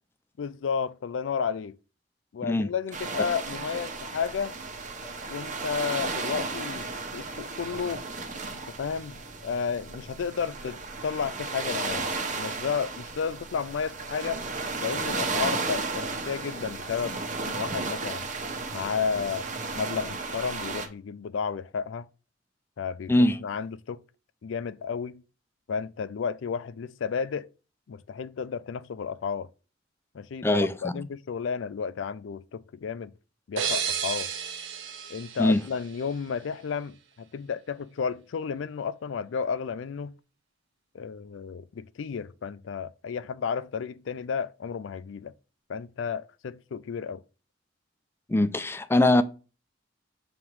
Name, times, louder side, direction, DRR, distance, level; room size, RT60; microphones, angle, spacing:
voice 1, 0.4-1.8 2.3-4.6 5.3-8.1 8.5-14.4 14.8-18.3 18.7-19.5 19.7-22.1 22.8-24.0 24.4-25.2 25.7-27.5 27.9-29.5 30.1-33.1 33.5-34.3 35.1-40.1 40.9-45.3 45.7-47.2, left 6 dB, 80° left, 0.4 m, -32 dB
sound 1, 2.9-20.9, right 3 dB, 40° right, 0.9 m, -34 dB
voice 2, 30.4-30.9 35.4-35.6 48.3-49.2, left 1 dB, 15° left, 0.4 m, -22 dB
sound 2, 33.6-36.3, right 7 dB, 75° right, 0.8 m, -33 dB
7.1 x 3.0 x 4.7 m
head